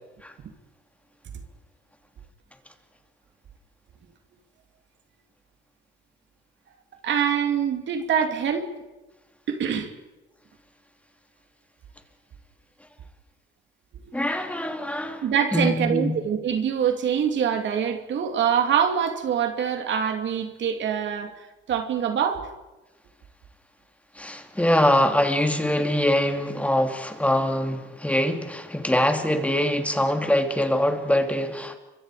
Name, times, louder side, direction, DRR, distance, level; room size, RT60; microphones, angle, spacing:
voice 1, 7.0-8.7 9.5-9.9 15.2-22.5, right 8 dB, 70° right, 2.7 m, -24 dB
voice 2, 14.1-15.2 15.5-16.1 24.1-31.8, left 1 dB, 5° left, 3.0 m, -23 dB
29.5 x 25.0 x 5.0 m
cardioid pair, 90°, 20 cm